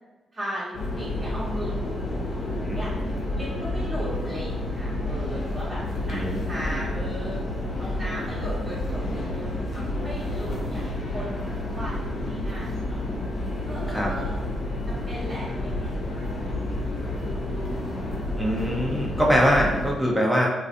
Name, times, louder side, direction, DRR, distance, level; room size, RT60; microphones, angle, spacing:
voice 1, 0.3-2.9 3.4-5.8 6.1-7.4 7.8-13.0 13.7-16.9, equal, 35° right, -9 dB, 0.9 m, -37 dB
sound 1, 0.7-19.9, left 1 dB, 60° left, 0.5 m, -30 dB
voice 2, 18.4-20.5, equal, 10° right, -2 dB, 0.6 m, -22 dB
2.4 x 2.2 x 2.5 m, 1.2 s
hypercardioid pair, 40°, 0 cm